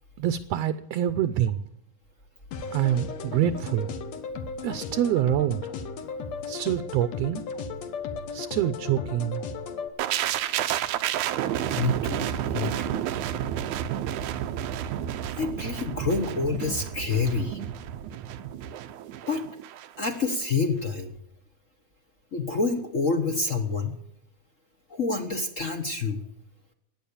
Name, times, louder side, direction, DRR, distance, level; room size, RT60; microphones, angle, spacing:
voice 1, 0.2-1.6 2.7-3.9 4.6-5.6 6.5-7.4 8.3-9.4, right 11 dB, 75° right, 11 dB, 1.8 m, -26 dB
sound 1, 2.5-9.9, left 5 dB, 70° left, 2.4 m, -35 dB
sound 2, 10.0-19.9 20.2-20.4, right 11 dB, 90° right, 2.3 m, -30 dB
voice 2, 11.8-13.0 15.4-17.6 19.3-19.4 20.0-21.2 22.3-23.9 24.9-26.2, left 4 dB, 50° left, 6 dB, 0.9 m, -28 dB
16.5 x 10.0 x 8.6 m, 0.76 s
omnidirectional pair, 3.3 m